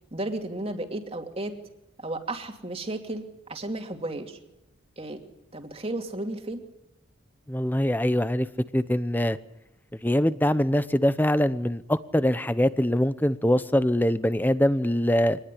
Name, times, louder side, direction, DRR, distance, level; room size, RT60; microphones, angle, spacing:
voice 1, 0.1-1.5 2.0-4.4 5.0-5.2 5.5-6.6, right 2 dB, 30° right, 4 dB, 2.6 m, -33 dB
voice 2, 7.5-8.5 8.7-9.4 10.0-15.4, left 1 dB, 10° left, 14 dB, 0.8 m, -23 dB
24.5 x 19.5 x 10.0 m, 0.88 s
head